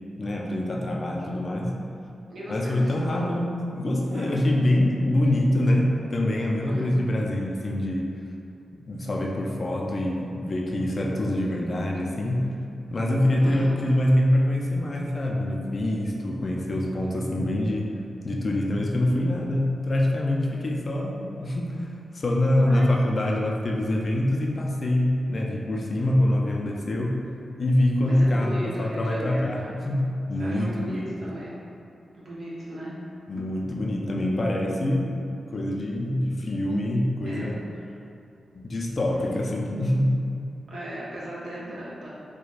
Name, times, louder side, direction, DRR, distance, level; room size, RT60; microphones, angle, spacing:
voice 1, 0.2-1.7 2.5-8.1 8.9-12.5 12.9-17.9 18.2-27.2 27.6-31.3 33.3-35.1 35.5-37.6 38.5-40.1, left 1 dB, 45° left, -1 dB, 0.4 m, -25 dB
voice 2, 2.3-3.3 4.1-4.5 6.7-6.9 13.4-13.9 22.5-22.9 28.0-29.7 30.4-31.6 32.1-33.0 37.2-37.8 40.7-42.1, equal, 70° right, -7 dB, 0.8 m, -37 dB
4.6 x 2.2 x 2.4 m, 2.6 s
cardioid pair, 85°, 0 cm